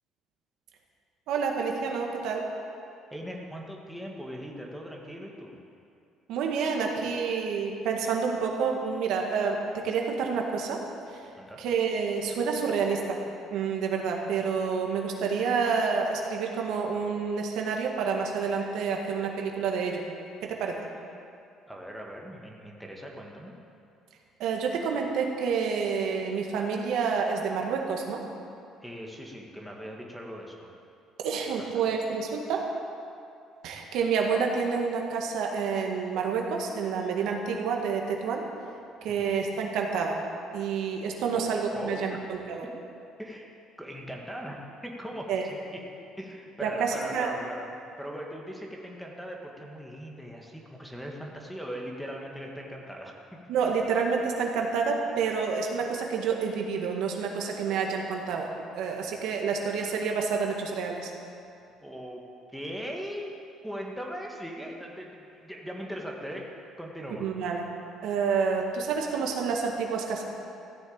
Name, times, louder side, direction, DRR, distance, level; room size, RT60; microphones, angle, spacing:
voice 1, 1.3-2.5 6.3-10.8 11.1-11.2 11.6-13.2 13.5-20.0 20.4-20.8 24.4-28.2 31.2-32.7 33.6-38.4 39.0-40.2 40.5-42.6 45.3-45.4 46.6-47.3 53.5-58.5 58.7-61.1 67.2-67.7 68.0-70.2, right 5 dB, 75° right, 1 dB, 1.8 m, -28 dB
voice 2, 3.1-5.6 11.4-11.6 21.7-23.5 28.8-30.7 31.6-31.7 39.1-39.3 41.3-42.2 42.6-42.7 43.2-43.5 43.8-45.8 46.2-53.4 61.8-63.3 63.6-66.5 66.8-67.3, equal, ahead, 0 dB, 1.7 m, -40 dB
15.0 x 6.9 x 8.8 m, 2.6 s
cardioid pair, 130°, 0 cm